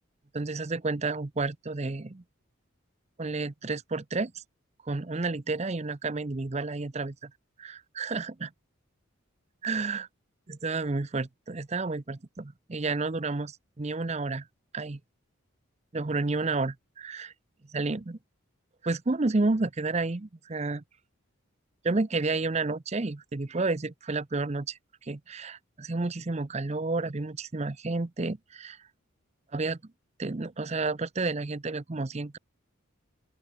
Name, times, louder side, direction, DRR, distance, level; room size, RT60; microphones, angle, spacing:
voice 1, 0.3-2.2 3.2-4.4 4.8-7.3 7.6-8.5 9.6-10.1 10.5-14.5 14.7-15.0 15.9-17.3 17.7-18.2 18.8-20.8 21.8-28.8 29.5-29.8 30.2-32.4, right 3 dB, 30° right, 0.6 m, -31 dB
open air
head